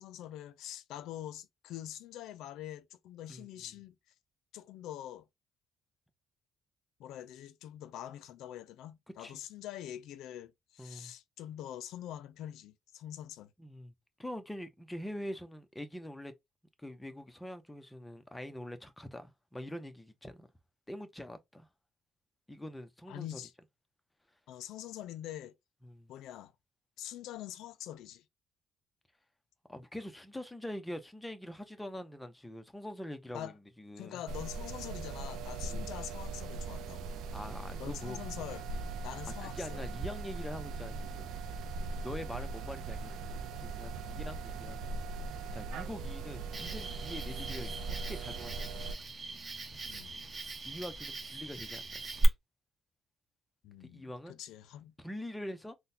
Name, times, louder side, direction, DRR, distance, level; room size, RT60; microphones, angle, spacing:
voice 1, 0.0-4.0 4.5-5.3 7.0-13.5 23.1-23.5 24.5-25.6 26.1-26.5 27.0-28.2 33.3-33.5 34.0-37.2 37.8-38.7 39.0-39.9 44.1-44.3 49.9-50.1 53.6-54.9, left 12 dB, 90° left, 0.3 m, -44 dB
voice 2, 10.8-11.1 13.6-13.9 14.2-16.3 16.8-20.5 20.9-21.7 22.5-23.4 25.8-26.1 29.7-34.2 35.7-35.9 37.3-38.2 39.3-41.3 42.0-44.8 45.2-48.9 50.6-52.0 53.8-54.4 55.0-55.7, left 1 dB, 10° left, 0.6 m, -44 dB
sound 1, 34.3-48.9, right 3 dB, 85° right, 0.4 m, -40 dB
Cricket, 46.5-52.2, right 2 dB, 35° right, 0.8 m, -40 dB
3.7 x 2.1 x 2.6 m
cardioid pair, 90°, 0 cm